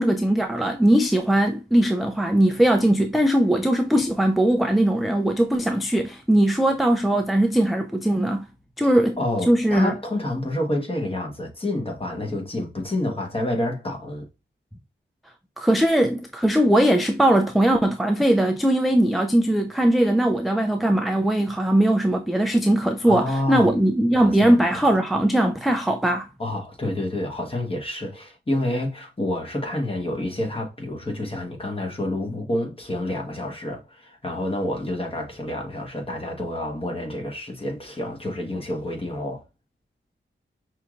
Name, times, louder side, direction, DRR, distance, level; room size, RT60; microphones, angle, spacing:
voice 1, 0.0-8.5 8.8-9.2 9.5-10.0 15.6-26.3, right 1 dB, ahead, 0.3 m, -20 dB
voice 2, 8.8-14.3 23.1-23.7 24.1-24.7 26.4-39.4, left 1 dB, 25° left, 1.2 m, -28 dB
5.6 x 3.1 x 2.4 m
wide cardioid pair, 145°, 21 cm